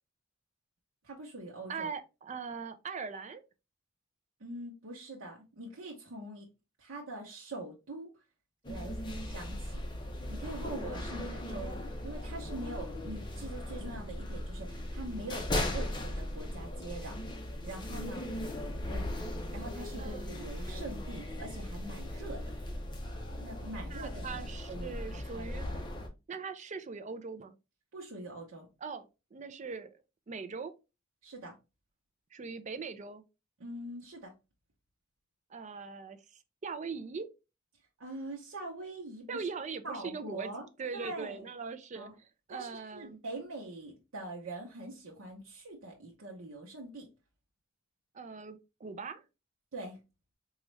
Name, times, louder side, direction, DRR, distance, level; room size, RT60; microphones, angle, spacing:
voice 1, 1.0-1.9 4.4-6.5 6.8-8.1 8.7-9.8 10.3-17.2 17.6-18.3 18.9-19.1 19.5-22.5 23.4-24.4 24.7-25.5 27.9-28.7 31.2-31.5 33.6-34.3 38.0-39.5 39.8-40.7 40.9-41.5 41.9-42.1 42.5-47.1 49.7-50.0, right 2 dB, 85° right, 0.8 m, -43 dB
voice 2, 1.7-3.4 20.0-20.6 23.9-25.8 26.3-27.5 28.8-29.9 30.3-30.7 32.3-33.2 35.5-37.3 39.3-43.2 48.1-49.3, right 5 dB, 35° right, 0.4 m, -41 dB
sound 1, 8.6-26.1, left 1 dB, 25° left, 0.7 m, -38 dB
4.0 x 2.4 x 3.1 m
head